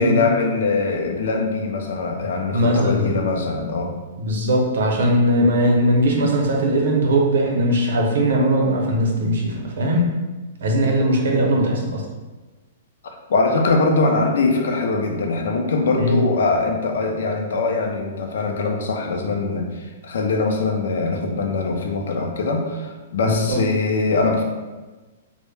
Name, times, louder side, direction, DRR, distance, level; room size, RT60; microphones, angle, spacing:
voice 1, 0.0-3.9 5.4-5.5 13.0-24.4, left 3 dB, 75° left, 3 dB, 0.4 m, -22 dB
voice 2, 2.5-3.1 4.2-10.1 10.6-12.0 16.0-16.2 23.2-23.6, equal, 70° right, 0 dB, 0.6 m, -19 dB
2.1 x 2.0 x 3.1 m, 1.2 s
hypercardioid pair, 160°, 0 cm